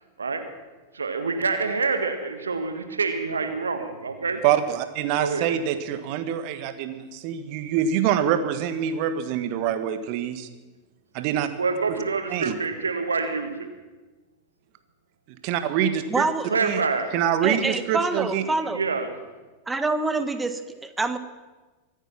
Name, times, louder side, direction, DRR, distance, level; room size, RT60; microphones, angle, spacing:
voice 1, 0.9-4.4 5.2-5.5 11.6-13.7 16.5-17.1 18.7-19.1, right 4 dB, 80° right, 7 dB, 1.7 m, -26 dB
voice 2, 4.4-10.5 11.1-11.5 11.9-12.0 12.3-12.6 15.4-16.2 16.6-16.8 17.1-18.4, right 9 dB, 50° right, 10 dB, 1.5 m, -25 dB
voice 3, 16.1-16.6 17.4-18.8 19.7-21.2, right 3 dB, 10° right, 10 dB, 1.3 m, -26 dB
24.0 x 9.1 x 6.0 m, 1.2 s
figure-of-eight pair, 90°, 0 cm